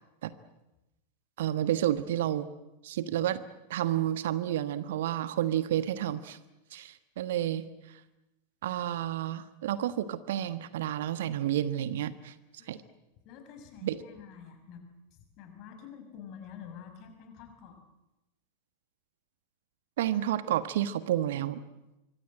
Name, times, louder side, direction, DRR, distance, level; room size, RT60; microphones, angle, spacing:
voice 1, 1.4-2.5 2.8-3.4 3.7-6.4 6.7-8.0 8.6-12.3 12.7-12.8 13.8-14.0 20.0-21.6, right 12 dB, 55° right, 14 dB, 1.3 m, -30 dB
voice 2, 13.2-14.8 15.1-17.8, left 7 dB, 40° left, 6 dB, 6.0 m, -48 dB
25.5 x 24.5 x 7.7 m, 0.96 s
figure-of-eight pair, 90°, 0 cm